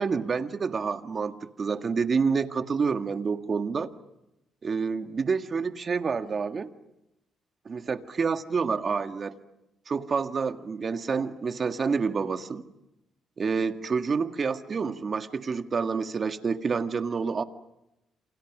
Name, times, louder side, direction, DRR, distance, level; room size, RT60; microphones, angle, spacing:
voice 1, 0.0-3.9 4.6-6.7 7.6-9.4 9.9-12.6 13.4-17.4, right 5 dB, 40° right, 8 dB, 1.8 m, -28 dB
28.5 x 28.0 x 6.1 m, 0.89 s
cardioid pair, 90°, 0 cm